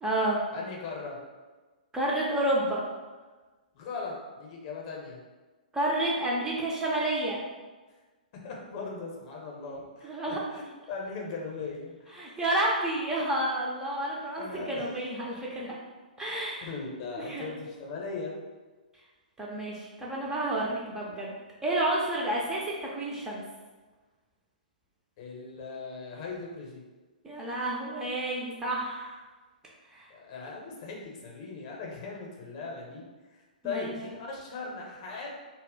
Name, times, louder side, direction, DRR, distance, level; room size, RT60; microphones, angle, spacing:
voice 1, 0.0-0.4 1.9-2.9 5.7-7.4 10.0-10.4 12.2-15.8 16.2-16.7 17.2-17.5 19.4-21.3 21.6-23.4 27.2-29.2 29.9-30.1 33.6-33.9, right 1 dB, 10° right, -5 dB, 0.3 m, -30 dB
voice 2, 0.5-1.2 3.7-5.2 8.4-12.1 14.4-14.9 16.6-18.3 25.2-26.9 30.1-33.0 33.3-35.3, left 4 dB, 35° left, -1 dB, 0.6 m, -39 dB
2.1 x 2.0 x 3.6 m, 1.3 s
figure-of-eight pair, 115°, 5 cm